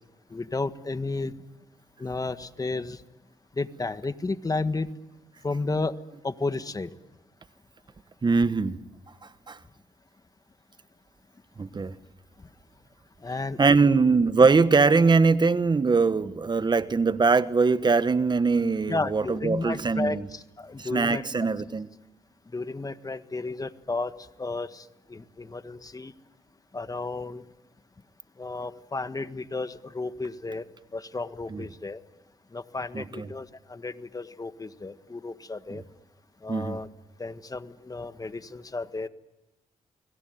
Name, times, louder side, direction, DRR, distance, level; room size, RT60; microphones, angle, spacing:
voice 1, 0.3-1.3 2.0-3.0 3.6-4.9 5.4-5.9 6.2-6.9 13.2-13.6 18.9-21.2 22.5-24.1 24.4-26.1 26.7-27.4 28.4-30.6 30.9-32.0 32.5-35.8 36.4-36.9 37.2-39.1, left 3 dB, 30° left, 1.6 m, -32 dB
voice 2, 8.2-8.8 9.2-9.6 11.6-12.0 13.6-20.2 20.8-21.9 31.5-31.6 32.9-33.2 35.7-35.8 36.5-36.8, right 4 dB, 35° right, 1.4 m, -22 dB
30.0 x 21.5 x 9.3 m
cardioid pair, 65°, 13 cm